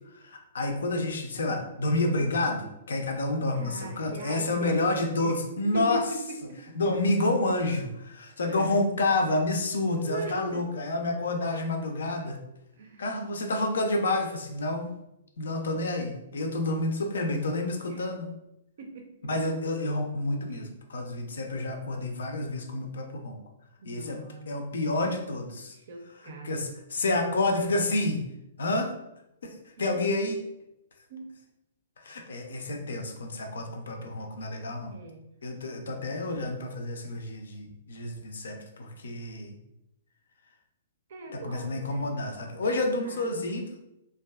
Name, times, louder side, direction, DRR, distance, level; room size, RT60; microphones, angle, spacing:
voice 1, 0.1-6.0 6.8-12.4 13.0-14.9 15.4-18.3 19.2-23.4 23.8-24.2 24.5-25.8 26.2-28.2 28.6-28.9 29.4-30.4 32.0-34.9 35.4-39.6 41.3-43.8, left 2 dB, 65° left, 3 dB, 0.4 m, -29 dB
voice 2, 3.5-5.3 5.7-6.2 6.5-6.6 8.4-8.7 10.0-10.7 12.8-13.0 17.8-18.0 18.8-19.4 20.5-20.7 23.8-24.6 25.7-26.7 31.1-31.3 34.9-35.3 35.6-35.8 41.1-42.1 42.6-43.3, right 1 dB, 55° right, 4 dB, 0.5 m, -40 dB
2.5 x 2.3 x 2.2 m, 0.87 s
figure-of-eight pair, 115°, 0 cm